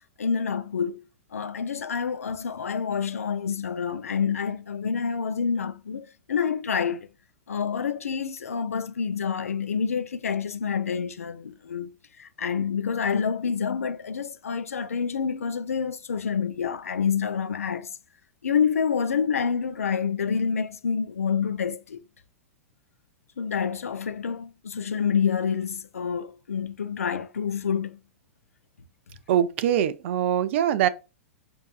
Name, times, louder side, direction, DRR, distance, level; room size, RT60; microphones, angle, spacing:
voice 1, 0.2-1.1 1.3-7.1 7.5-11.9 12.2-17.9 18.4-22.0 23.4-28.0, left 6 dB, 80° left, 0.5 m, -27 dB
voice 2, 29.3-30.9, right 10 dB, 55° right, 0.5 m, -23 dB
5.3 x 2.7 x 2.4 m
figure-of-eight pair, 100°, 8 cm